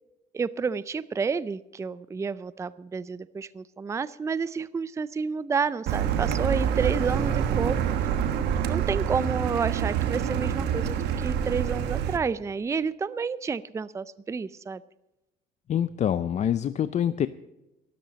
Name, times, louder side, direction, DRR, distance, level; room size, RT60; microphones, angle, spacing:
voice 1, 0.3-7.8 8.0-8.1 8.7-14.8, right 5 dB, 15° right, 17 dB, 0.4 m, -30 dB
Car, 5.9-12.2, right 8 dB, 75° right, 1.3 m, -26 dB
voice 2, 15.7-17.3, left 9 dB, 45° left, 13 dB, 0.5 m, -25 dB
13.0 x 13.0 x 5.2 m, 0.97 s
cardioid pair, 110°, 17 cm